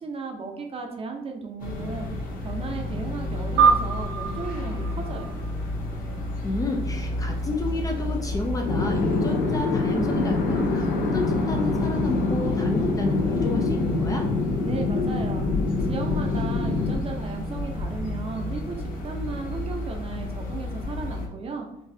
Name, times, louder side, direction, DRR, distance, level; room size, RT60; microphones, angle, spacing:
voice 1, 0.0-2.1 2.4-5.3 14.6-15.4 15.9-21.7, right 4 dB, 35° right, 3 dB, 0.6 m, -35 dB
sound 1, 1.6-21.3, left 1 dB, 55° left, 0.8 m, -32 dB
sound 2, 3.6-6.3, right 6 dB, 85° right, 0.4 m, -25 dB
voice 2, 6.4-14.3, left 3 dB, 20° left, 3 dB, 0.5 m, -30 dB
sound 3, 8.6-17.0, left 3 dB, 80° left, 0.9 m, -25 dB
4.0 x 2.4 x 2.7 m, 0.82 s
cardioid pair, 110°, 17 cm